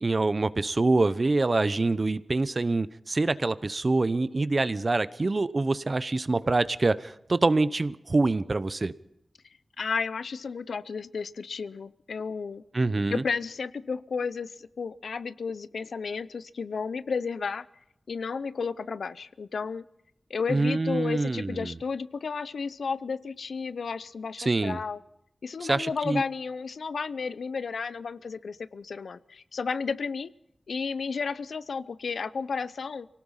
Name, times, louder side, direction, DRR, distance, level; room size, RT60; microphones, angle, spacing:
voice 1, 0.0-8.9 12.7-13.2 20.5-21.7 24.4-24.8 25.6-26.2, right 3 dB, 45° right, 15 dB, 0.9 m, -25 dB
voice 2, 9.8-12.6 13.1-17.7 18.1-19.8 20.3-25.0 25.4-30.3 30.7-33.1, left 5 dB, 90° left, 16 dB, 0.6 m, -32 dB
25.0 x 18.0 x 5.7 m, 0.82 s
cardioid pair, 55°, 0 cm